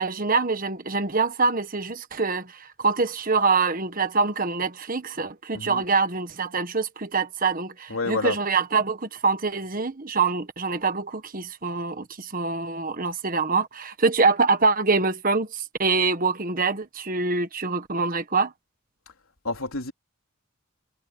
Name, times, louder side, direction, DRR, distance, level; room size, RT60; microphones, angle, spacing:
voice 1, 0.0-18.5, right 4 dB, 40° right, 1.4 m, -25 dB
voice 2, 5.5-5.8 7.9-8.4 19.4-19.9, left 3 dB, 75° left, 3.7 m, -29 dB
head